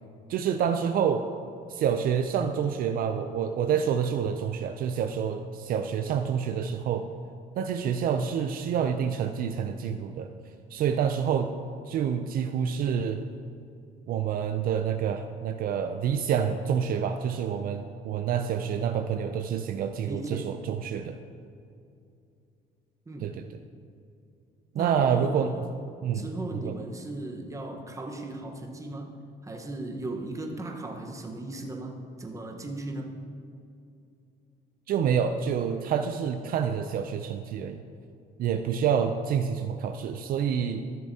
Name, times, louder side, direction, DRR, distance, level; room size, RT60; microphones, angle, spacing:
voice 1, 0.3-1.2 1.7-7.0 7.6-10.3 10.7-11.5 11.9-13.2 14.1-21.2 23.2-23.4 24.7-25.5 26.0-26.3 26.5-26.7 34.9-37.8 38.4-40.9, right 7 dB, 60° right, 7 dB, 0.4 m, -27 dB
voice 2, 20.1-20.5 23.1-23.4 24.7-25.7 26.1-29.2 29.4-33.1, right 2 dB, 20° right, 2 dB, 1.1 m, -37 dB
13.5 x 6.8 x 2.8 m, 2.5 s
cardioid pair, 110°, 17 cm